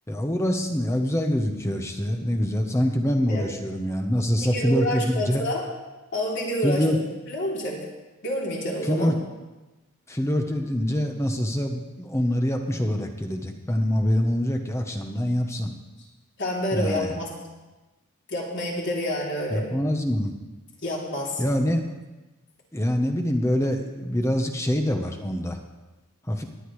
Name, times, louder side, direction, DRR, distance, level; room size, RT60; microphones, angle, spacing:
voice 1, 0.1-5.4 6.6-7.0 8.9-9.1 10.1-15.7 16.7-17.1 19.5-20.3 21.4-21.8 22.7-25.6 26.3-26.4, equal, 15° left, 4 dB, 0.8 m, -25 dB
voice 2, 4.4-5.6 6.1-6.9 7.3-7.8 8.2-9.1 16.4-17.3 18.3-19.6 20.8-21.4, equal, 55° left, -4 dB, 3.0 m, -28 dB
18.0 x 9.9 x 3.2 m, 1.1 s
head